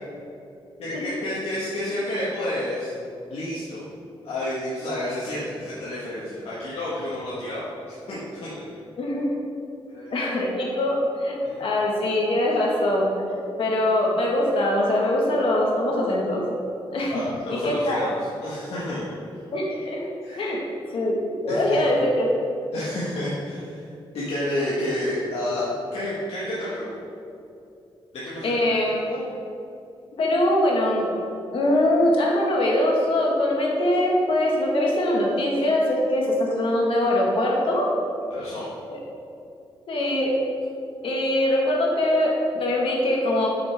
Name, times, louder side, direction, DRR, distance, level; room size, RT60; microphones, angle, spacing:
voice 1, 0.8-2.9 3.3-3.8 4.2-8.7 9.9-10.1 11.4-11.6 17.1-18.2 18.4-19.1 20.2-20.5 21.5-21.8 22.7-23.9 24.1-26.9 28.1-28.8 38.3-38.7, left 1 dB, 90° left, -9 dB, 1.6 m, -30 dB
voice 2, 10.1-13.1 13.6-16.4 16.9-17.1 17.5-18.0 19.5-20.0 20.4-20.6 20.9-22.4 28.4-29.3 30.2-31.1 31.5-37.9 38.9-39.0 39.9-40.3 41.0-43.5, left 1 dB, 65° left, -2 dB, 1.6 m, -22 dB
8.6 x 6.4 x 3.5 m, 2.6 s
wide cardioid pair, 150°, 10 cm